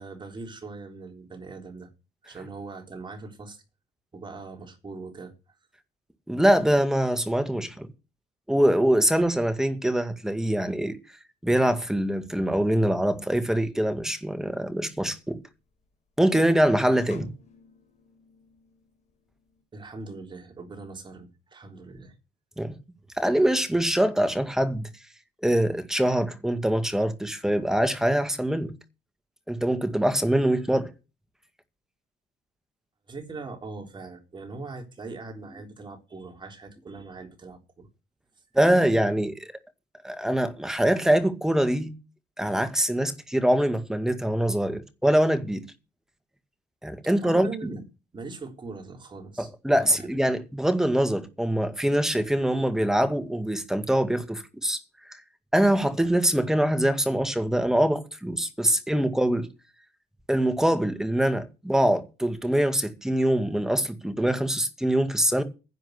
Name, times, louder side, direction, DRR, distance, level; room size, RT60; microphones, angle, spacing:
voice 1, 0.0-1.9 2.2-3.6 4.1-5.3 19.7-22.1 33.1-37.9 47.2-47.8 48.1-50.2, right 3 dB, 25° right, 3.8 m, -41 dB
voice 2, 6.3-7.9 8.5-11.0 11.4-15.4 16.2-17.3 22.6-22.7 23.2-24.9 25.4-28.7 29.5-30.9 38.5-39.5 40.0-41.9 42.4-45.7 46.8-47.7 49.4-54.8 55.1-55.2 55.5-59.5 60.3-65.4, right 1 dB, 5° right, 1.8 m, -24 dB
Guitar Drop, 14.9-19.6, left 6 dB, 40° left, 4.1 m, -50 dB
10.5 x 7.7 x 8.2 m
cardioid pair, 110°, 17 cm